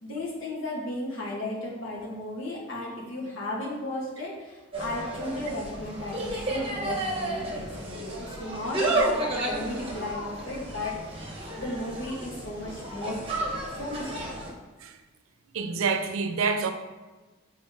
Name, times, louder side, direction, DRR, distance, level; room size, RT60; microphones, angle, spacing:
voice 1, 0.0-9.2 9.5-11.2 11.6-13.2 13.7-14.4, left 1 dB, 70° left, -5 dB, 1.9 m, -35 dB
Insect, 4.7-14.5, right 1 dB, 25° right, 1.0 m, -32 dB
voice 2, 15.5-16.7, right 5 dB, 85° right, 7 dB, 0.5 m, -27 dB
7.4 x 4.3 x 3.1 m, 1.2 s
head